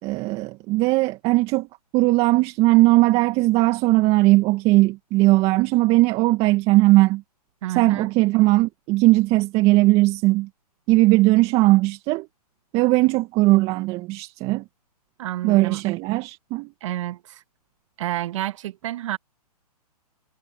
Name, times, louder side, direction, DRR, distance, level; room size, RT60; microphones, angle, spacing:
voice 1, 0.0-1.7 1.9-7.2 7.8-10.5 10.9-12.3 12.7-14.6 15.4-16.7, right 20 dB, 30° right, 2.1 m, -18 dB
voice 2, 7.6-8.1 15.2-15.8 16.8-17.4 18.0-19.2, right 14 dB, 50° right, 1.8 m, -29 dB
hypercardioid pair, 135°, 20 cm